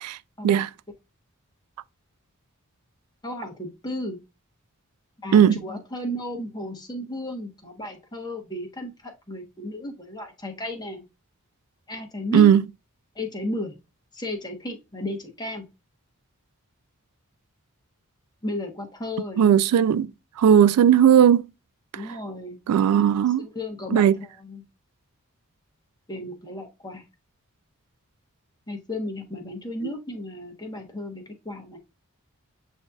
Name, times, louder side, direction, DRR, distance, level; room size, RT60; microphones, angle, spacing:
voice 1, 3.2-4.2 5.2-11.1 11.9-12.5 13.1-13.7 14.1-15.6 18.4-19.6 21.9-22.6 23.4-24.6 26.1-27.0 28.7-31.8, left 1 dB, 20° left, 1.0 m, -34 dB
voice 2, 12.3-12.6 19.4-20.1 20.4-21.5 21.9-22.0 22.7-23.5 23.9-24.2 29.8-29.9, right 9 dB, 90° right, 0.3 m, -17 dB
8.0 x 2.7 x 2.3 m
head